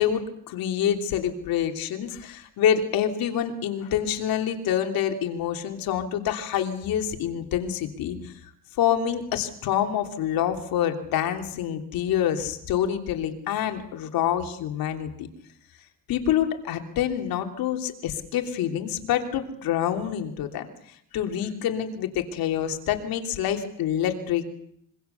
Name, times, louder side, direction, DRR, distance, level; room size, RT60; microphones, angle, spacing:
voice 1, 0.0-8.3 8.8-15.3 16.1-20.7 21.1-24.5, left 9 dB, 85° left, 5 dB, 3.2 m, -26 dB
25.5 x 24.0 x 7.0 m, 0.68 s
cardioid pair, 125°, 34 cm